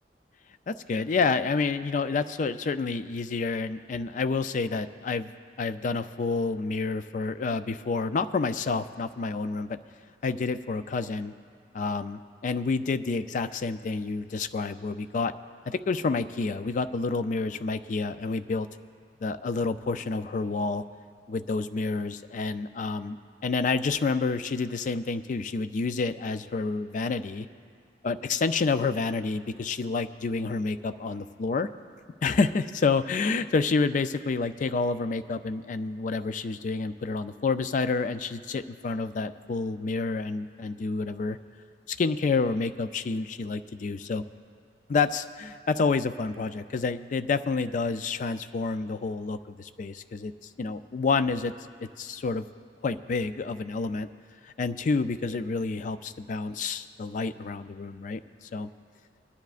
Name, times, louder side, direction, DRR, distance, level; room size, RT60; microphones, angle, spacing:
voice 1, 0.7-5.3 5.6-9.8 10.2-11.3 11.7-15.3 15.7-18.7 19.2-20.8 21.3-23.2 23.4-27.5 28.0-31.7 32.2-41.4 41.9-44.2 44.9-50.3 50.6-51.5 51.8-52.5 52.8-54.1 54.4-58.7, left 4 dB, 45° left, 11 dB, 0.4 m, -29 dB
22.5 x 10.5 x 2.5 m, 2.1 s
head